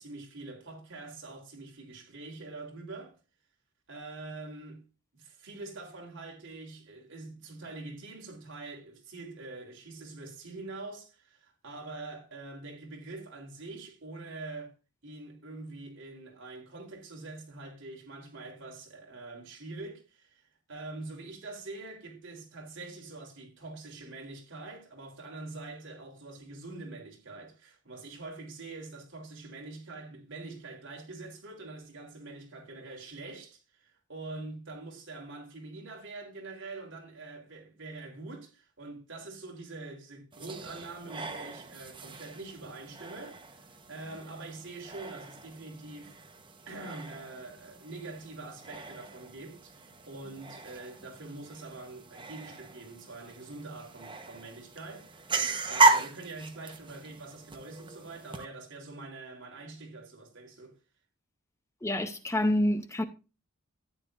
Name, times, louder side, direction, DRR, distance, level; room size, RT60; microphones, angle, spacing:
voice 1, 0.0-3.2 3.9-4.8 5.1-14.7 15.0-46.2 46.6-55.2 55.7-60.8, right 3 dB, 55° right, 3.4 m, -44 dB
sound 1, 40.3-58.4, right 3 dB, 20° right, 1.0 m, -34 dB
voice 2, 61.8-63.0, left 1 dB, 15° left, 0.6 m, -27 dB
13.5 x 9.6 x 2.5 m
head